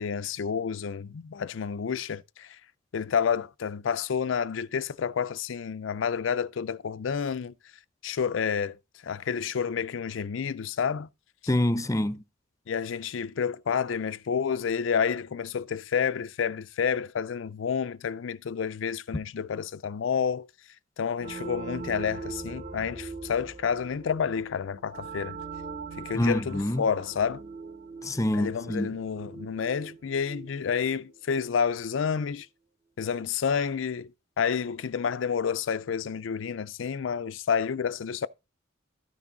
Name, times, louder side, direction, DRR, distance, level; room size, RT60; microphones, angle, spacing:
voice 1, 0.0-2.6 2.9-7.5 8.0-8.8 9.0-11.1 12.7-20.5 21.0-25.4 26.0-27.4 28.3-32.5 33.0-34.1 34.4-38.3, left 6 dB, 75° left, 0.4 m, -29 dB
voice 2, 11.5-12.2 26.1-26.8 28.0-28.9, left 1 dB, 15° left, 0.6 m, -26 dB
sound 1, 21.2-31.6, right 4 dB, 35° right, 1.0 m, -41 dB
13.0 x 6.0 x 4.0 m
head